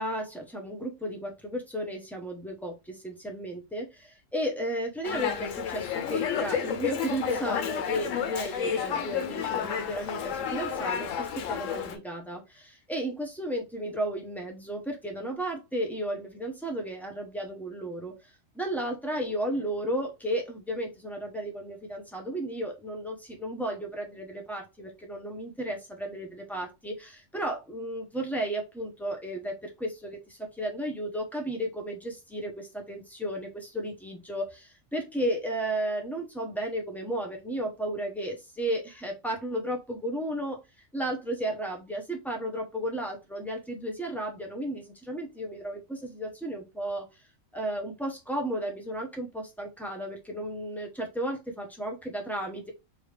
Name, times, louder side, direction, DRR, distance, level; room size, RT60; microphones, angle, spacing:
voice 1, 0.0-18.1 18.5-40.6 40.9-47.1 47.5-52.7, right 1 dB, ahead, 1 dB, 0.7 m, -34 dB
Dog, 5.0-12.0, left 8 dB, 85° left, 1.0 m, -31 dB
3.4 x 2.7 x 3.2 m, 0.24 s
omnidirectional pair, 1.3 m